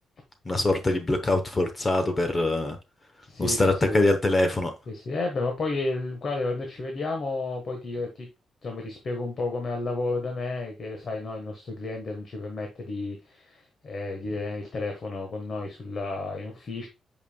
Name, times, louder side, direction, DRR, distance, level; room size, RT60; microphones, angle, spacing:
voice 1, 0.5-2.8 3.4-4.7, left 2 dB, 20° left, 7 dB, 0.8 m, -23 dB
voice 2, 3.3-4.1 4.9-8.3 8.6-16.9, left 3 dB, 40° left, 3 dB, 1.3 m, -32 dB
8.1 x 5.3 x 2.2 m, 0.26 s
cardioid pair, 160°, 0 cm